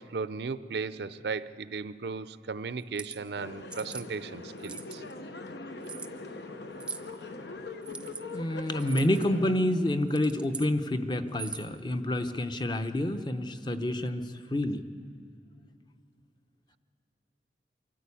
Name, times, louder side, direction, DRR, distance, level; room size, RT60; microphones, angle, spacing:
voice 1, 0.0-5.0, right 4 dB, 70° right, 15 dB, 0.5 m, -36 dB
sound 1, 2.8-3.2 3.7-4.1 4.6-5.1 5.8-6.1 6.8-7.1 7.8-8.2 8.8-9.3 10.0-10.7 11.3-11.8, right 5 dB, 5° right, 0.6 m, -41 dB
sound 2, 3.4-9.5, left 2 dB, 80° left, 1.1 m, -42 dB
voice 2, 8.3-14.8, left 1 dB, 25° left, 8 dB, 0.8 m, -28 dB
24.0 x 14.0 x 8.4 m, 2.3 s
head